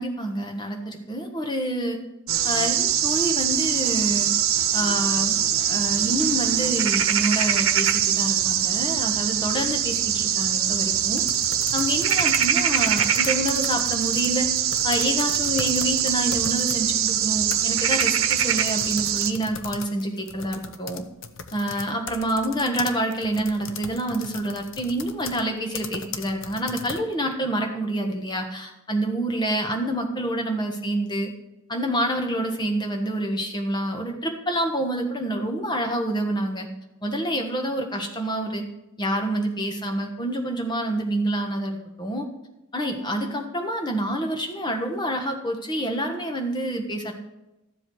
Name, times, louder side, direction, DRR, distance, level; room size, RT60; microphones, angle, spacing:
voice 1, 0.0-2.0 2.4-4.3 4.7-5.4 5.7-11.2 11.7-14.5 14.8-21.0 21.5-31.3 31.7-36.7 37.0-38.6 39.0-42.3 42.7-47.1, right 1 dB, 20° left, 3 dB, 1.4 m, -27 dB
sound 1, 2.3-19.3, right 9 dB, 85° right, 1.0 m, -23 dB
sound 2, 9.3-9.7 10.2-16.8 17.3-27.1, left 6 dB, 65° left, 0.7 m, -38 dB
13.0 x 7.5 x 4.7 m, 0.96 s
head